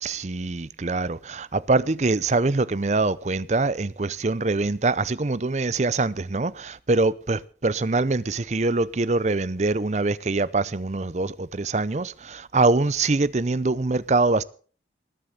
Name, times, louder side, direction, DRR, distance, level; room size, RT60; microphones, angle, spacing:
voice 1, 0.0-14.4, right 3 dB, 40° right, 0.6 m, -24 dB
20.0 x 7.5 x 6.7 m
head